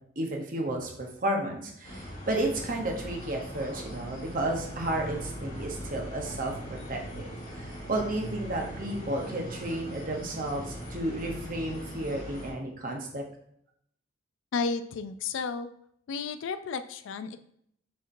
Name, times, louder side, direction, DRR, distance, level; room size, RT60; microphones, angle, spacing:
voice 1, 0.2-13.2, right 1 dB, 45° right, 1 dB, 0.7 m, -32 dB
sound 1, 1.8-12.5, equal, 45° left, 1.4 m, -40 dB
voice 2, 14.5-15.7 16.1-17.4, left 5 dB, 70° left, 11 dB, 0.3 m, -32 dB
6.4 x 2.8 x 2.5 m, 0.69 s
head